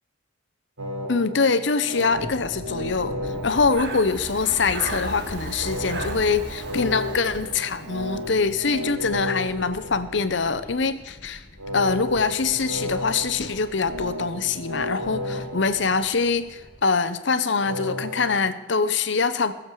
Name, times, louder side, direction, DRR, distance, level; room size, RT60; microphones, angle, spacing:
sound 1, 0.8-4.6 5.6-10.6 11.6-16.6 17.6-18.3, left 1 dB, 80° right, 2.1 m, -34 dB
voice 1, 1.1-11.4 11.7-19.5, left 4 dB, 65° left, 11 dB, 0.8 m, -24 dB
sound 2, 2.1-16.9, left 1 dB, 40° left, 1.1 m, -45 dB
Breathing, 3.4-8.3, right 2 dB, 55° right, 1.6 m, -35 dB
20.5 x 7.3 x 4.7 m, 1.2 s
head